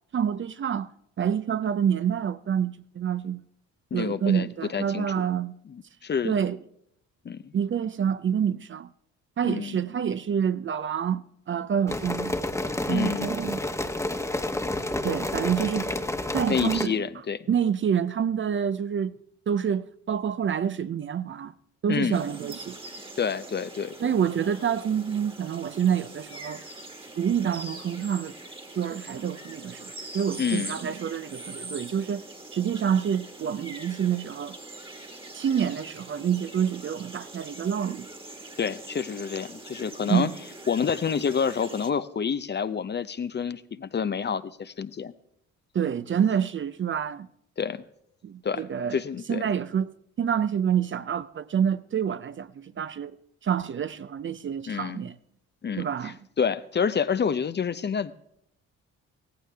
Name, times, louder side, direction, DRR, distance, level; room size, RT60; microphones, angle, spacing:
voice 1, 0.1-0.9 1.2-3.4 3.9-5.5 6.2-6.6 7.5-8.9 9.4-12.3 12.9-13.7 15.0-16.1 16.3-17.0 17.5-19.1 19.5-21.5 21.8-22.8 24.0-26.6 27.2-28.3 28.8-32.2 32.5-34.6 35.3-38.1 40.1-40.3 45.7-47.3 48.2-49.0 49.3-53.1 53.4-55.2 55.8-56.2, right 8 dB, 35° right, 0.5 m, -27 dB
voice 2, 3.9-4.5 4.7-5.1 5.7-6.4 7.2-7.4 9.4-9.8 12.9-13.3 16.5-17.5 21.9-22.2 23.2-24.1 30.4-30.8 38.6-40.3 40.7-45.1 47.6-47.8 48.4-48.6 48.9-49.4 54.7-55.0 55.6-58.1, left 6 dB, 30° left, 0.6 m, -28 dB
sound 1, 11.9-16.9, left 1 dB, 10° left, 1.1 m, -30 dB
sound 2, 22.1-41.9, right 2 dB, 15° right, 1.6 m, -43 dB
16.5 x 15.5 x 3.4 m
supercardioid pair, 60°, 33 cm